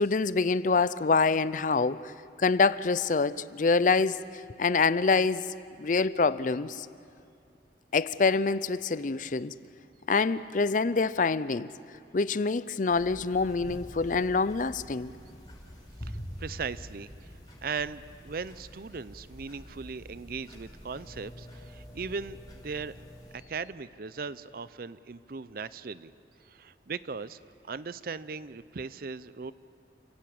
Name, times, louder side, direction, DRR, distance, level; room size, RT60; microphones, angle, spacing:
voice 1, 0.0-2.1 2.4-4.2 4.6-5.5 5.8-6.9 7.9-9.5 10.1-11.7 12.1-15.1, left 4 dB, 45° left, 0.5 m, -26 dB
sound 1, 12.9-23.4, equal, 25° left, 4.7 m, -46 dB
voice 2, 16.0-22.9 23.3-26.1 26.4-29.5, right 5 dB, 55° right, 0.6 m, -38 dB
29.0 x 16.0 x 8.7 m
head